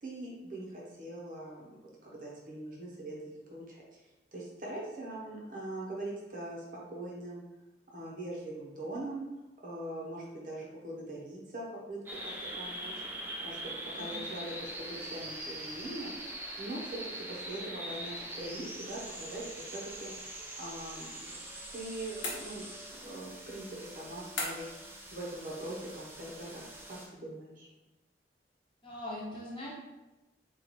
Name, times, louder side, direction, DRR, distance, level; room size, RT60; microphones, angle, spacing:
voice 1, 0.0-4.0 4.3-7.4 7.9-9.2 9.6-17.0 17.3-20.1 20.6-21.2 21.7-27.7, right 1 dB, 45° right, -4 dB, 0.8 m, -42 dB
sound 1, 12.1-27.1, right 1 dB, 10° right, 0.4 m, -43 dB
sound 2, 22.2-23.0 24.4-24.9, left 2 dB, 85° left, 1.0 m, -38 dB
voice 2, 28.8-29.7, left 1 dB, 30° left, -6 dB, 1.0 m, -41 dB
3.0 x 2.5 x 4.0 m, 1.0 s
head